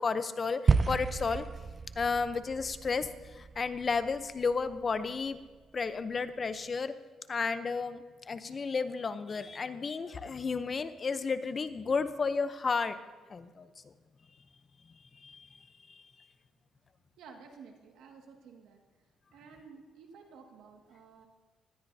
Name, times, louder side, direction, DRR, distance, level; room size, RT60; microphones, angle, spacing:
voice 1, 0.0-1.4 2.0-3.1 3.4-5.4 5.7-6.9 7.3-13.0 13.3-13.7 15.2-15.5, left 4 dB, 40° left, 12 dB, 0.8 m, -32 dB
sound 1, 0.7-5.0, right 4 dB, 35° right, 0.5 m, -32 dB
voice 2, 17.2-18.8 19.3-21.3, right 5 dB, 85° right, 2 dB, 2.0 m, -53 dB
19.0 x 13.0 x 2.8 m, 1.4 s
cardioid pair, 90°, 0 cm